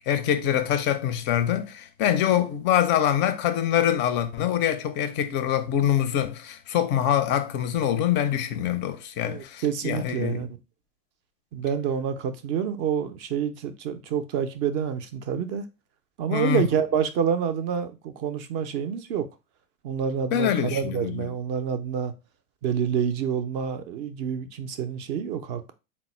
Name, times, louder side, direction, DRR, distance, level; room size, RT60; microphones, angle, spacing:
voice 1, 0.1-10.4 16.3-16.7 20.3-21.3, left 10 dB, 25° left, 0.4 m, -24 dB
voice 2, 9.2-10.5 11.5-15.6 16.2-19.3 19.8-22.1 22.6-25.7, right 7 dB, 35° right, 0.4 m, -28 dB
4.1 x 2.1 x 4.1 m
hypercardioid pair, 110°, 47 cm